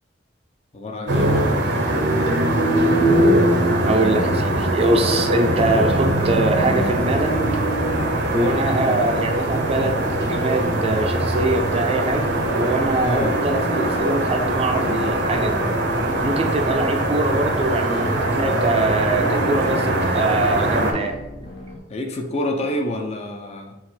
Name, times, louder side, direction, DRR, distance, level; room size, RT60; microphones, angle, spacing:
voice 1, 0.7-1.5 8.3-8.6 13.0-13.4 21.9-23.8, left 1 dB, 35° left, 4 dB, 0.5 m, -27 dB
sound 1, 1.1-20.9, right 1 dB, 65° right, 0.7 m, -21 dB
voice 2, 3.8-7.3 8.3-15.6 16.2-21.2, right 2 dB, 35° right, 5 dB, 0.4 m, -23 dB
sound 2, 5.5-21.8, right 1 dB, 75° left, 0.9 m, -35 dB
4.6 x 2.5 x 3.8 m, 0.98 s
head